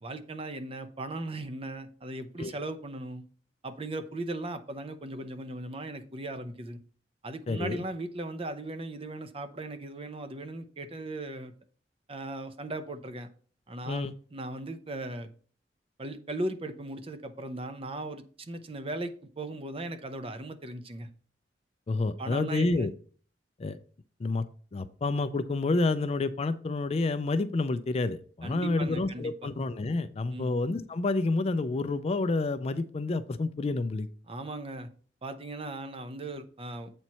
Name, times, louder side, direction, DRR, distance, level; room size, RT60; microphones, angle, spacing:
voice 1, 0.0-3.2 3.6-6.8 7.2-11.5 12.1-13.3 13.7-14.1 14.3-15.3 16.0-21.1 22.2-22.9 28.4-29.5 30.3-30.5 34.3-34.9 35.2-36.9, right 2 dB, 35° right, 8 dB, 0.7 m, -38 dB
voice 2, 7.5-7.8 13.9-14.1 21.9-22.9 23.6-23.8 24.2-24.4 24.7-34.1, left 3 dB, 35° left, 12 dB, 0.4 m, -29 dB
7.9 x 4.5 x 4.2 m, 0.43 s
head